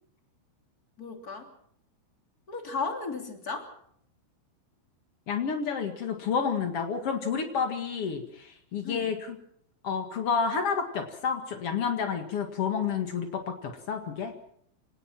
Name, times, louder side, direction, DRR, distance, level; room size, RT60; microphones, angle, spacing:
voice 1, 1.0-1.5 2.5-3.7 8.8-9.1, left 4 dB, 20° left, 4 dB, 2.7 m, -35 dB
voice 2, 5.3-9.3 9.8-14.3, left 6 dB, 80° left, 4 dB, 1.3 m, -30 dB
28.0 x 18.5 x 6.0 m, 0.68 s
omnidirectional pair, 5.8 m